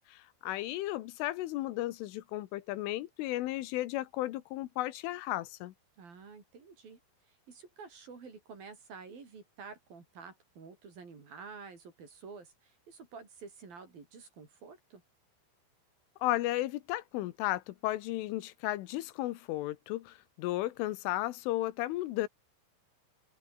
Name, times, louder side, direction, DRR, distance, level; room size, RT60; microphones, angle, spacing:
voice 1, 0.1-5.7 16.2-22.3, left 16 dB, 85° left, 3.7 m, -34 dB
voice 2, 6.0-7.0 7.2-15.0, right 5 dB, 50° right, 6.7 m, -50 dB
omnidirectional pair, 5.6 m